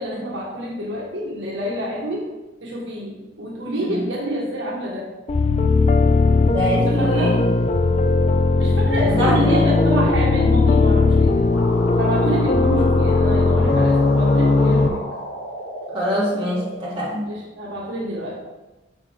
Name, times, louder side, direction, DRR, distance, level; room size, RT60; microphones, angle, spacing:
voice 1, 0.0-2.3 2.6-5.1 6.9-7.4 8.5-11.5 12.0-15.0 17.3-18.4, equal, 70° right, -4 dB, 1.6 m, -27 dB
sound 1, 5.3-14.9, left 3 dB, 35° left, 0.4 m, -17 dB
voice 2, 6.5-7.5 9.1-9.6 15.9-17.3, equal, 25° right, -8 dB, 2.6 m, -24 dB
sound 2, 11.5-16.7, equal, 75° left, 1.8 m, -33 dB
7.2 x 6.3 x 3.6 m, 1.1 s
head